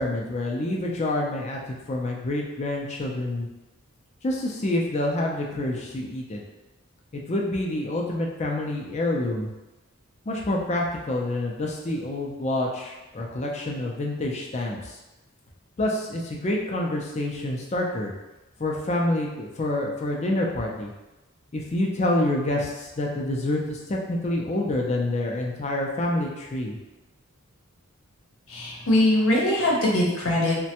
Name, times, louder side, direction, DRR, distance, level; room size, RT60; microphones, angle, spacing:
voice 1, 0.0-1.6 1.9-3.5 4.2-6.4 7.1-9.5 10.3-15.0 15.8-18.1 18.6-20.9 21.5-26.8, left 1 dB, 30° left, -1 dB, 0.4 m, -27 dB
voice 2, 28.5-30.6, left 1 dB, 75° left, -3 dB, 0.8 m, -22 dB
3.2 x 2.2 x 2.8 m, 1.0 s
head